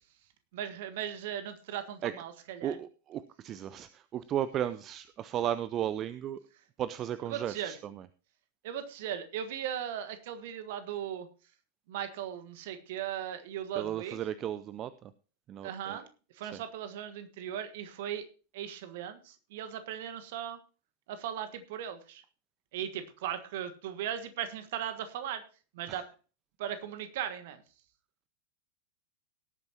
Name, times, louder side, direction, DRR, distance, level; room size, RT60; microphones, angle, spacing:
voice 1, 0.5-2.8 7.3-7.7 8.6-11.3 11.9-14.2 15.6-16.1 16.3-18.2 18.5-20.6 21.1-22.2 22.7-25.4 25.7-26.1 26.6-27.6, right 10 dB, 50° right, 10 dB, 1.4 m, -38 dB
voice 2, 2.6-6.4 6.8-8.0 13.8-15.1 15.5-16.0 16.4-16.6 25.9-26.0, right 10 dB, 30° right, 15 dB, 0.5 m, -35 dB
18.0 x 8.8 x 2.9 m, 0.36 s
figure-of-eight pair, 90°, 0 cm